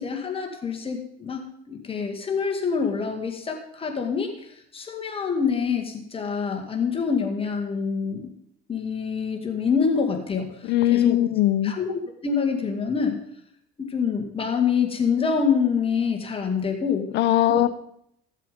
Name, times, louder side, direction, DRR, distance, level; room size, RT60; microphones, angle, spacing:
voice 1, 0.0-4.3 4.7-8.3 8.7-11.2 11.6-13.2 13.9-17.1 17.5-17.6, left 6 dB, 25° left, 3 dB, 1.9 m, -26 dB
voice 2, 10.6-11.7 17.1-17.7, left 13 dB, 60° left, 13 dB, 0.8 m, -20 dB
15.0 x 7.6 x 5.2 m, 0.71 s
supercardioid pair, 110°, 21 cm